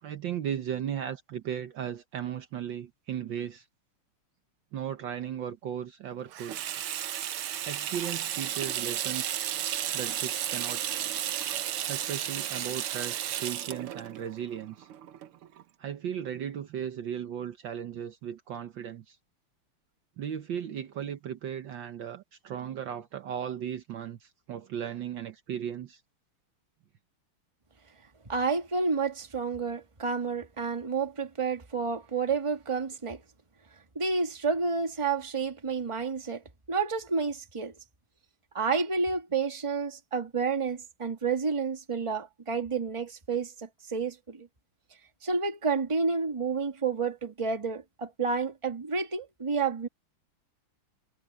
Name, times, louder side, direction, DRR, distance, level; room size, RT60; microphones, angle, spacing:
voice 1, 0.0-3.6 4.7-6.6 7.6-9.4 9.9-11.0 11.9-14.9 15.8-19.2 20.2-26.0, right 9 dB, 65° right, 1.6 m, -36 dB
Water tap faucet / Sink (filling or washing), 6.3-15.6, right 11 dB, 80° right, 1.9 m, -33 dB
voice 2, 28.3-33.2 33.9-36.4 36.7-37.7 38.5-44.5 45.2-49.9, right 4 dB, 15° right, 1.6 m, -30 dB
omnidirectional pair, 2.4 m